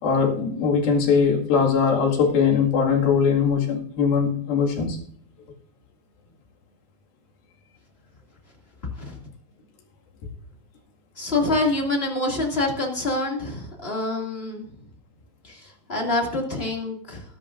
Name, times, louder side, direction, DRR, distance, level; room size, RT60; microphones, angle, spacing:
voice 1, 0.0-5.0, left 6 dB, 90° left, 0 dB, 4.0 m, -21 dB
voice 2, 11.2-14.7 15.9-17.2, left 2 dB, 20° left, 0 dB, 2.0 m, -26 dB
20.0 x 10.5 x 2.6 m, 0.62 s
omnidirectional pair, 4.1 m